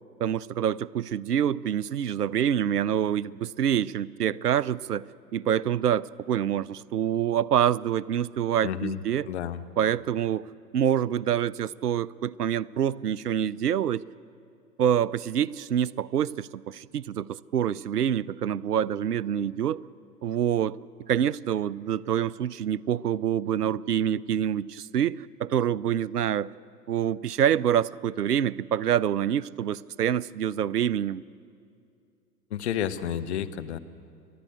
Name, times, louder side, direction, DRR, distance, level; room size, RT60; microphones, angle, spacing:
voice 1, 0.2-5.0 5.3-9.3 9.8-10.5 10.7-14.0 14.8-19.8 20.2-20.8 21.1-26.5 26.9-31.2, right 9 dB, 70° right, 22 dB, 0.6 m, -26 dB
voice 2, 8.6-9.0 9.3-9.6 32.5-33.8, left 10 dB, 40° left, 10 dB, 1.0 m, -30 dB
29.0 x 12.0 x 8.1 m, 2.5 s
figure-of-eight pair, 110°, 49 cm